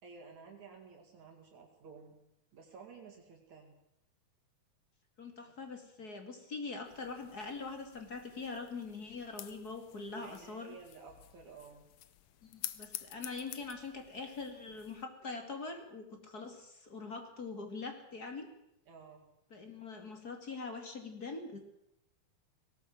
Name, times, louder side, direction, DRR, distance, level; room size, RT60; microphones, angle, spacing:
voice 1, 0.0-2.2 2.5-3.7 10.2-11.8 18.9-19.2, right 5 dB, 65° right, 1 dB, 3.8 m, -53 dB
voice 2, 5.2-10.7 12.4-18.5 19.5-21.6, left 4 dB, 30° left, 5 dB, 2.6 m, -43 dB
sound 1, 6.8-15.0, left 12 dB, 70° left, 1.4 m, -50 dB
19.5 x 18.0 x 7.7 m, 0.81 s
omnidirectional pair, 3.5 m